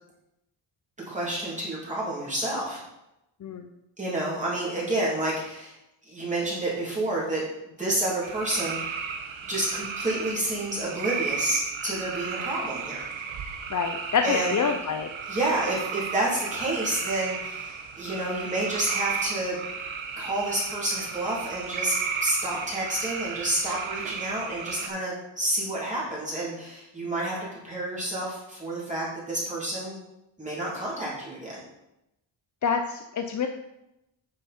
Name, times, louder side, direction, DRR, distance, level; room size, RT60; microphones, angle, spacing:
voice 1, 1.1-2.8 4.0-5.7 6.0-7.4 7.7-9.0 9.5-13.1 14.2-14.6 15.3-19.6 20.2-22.0 22.2-27.4 27.6-30.0 30.4-31.6, right 1 dB, 15° right, -7 dB, 2.9 m, -29 dB
sound 1, 8.2-24.9, right 6 dB, 85° right, 1.2 m, -34 dB
voice 2, 13.7-15.1 32.6-33.5, left 6 dB, 40° left, 6 dB, 0.5 m, -27 dB
9.3 x 6.7 x 4.3 m, 0.89 s
wide cardioid pair, 160°, 46 cm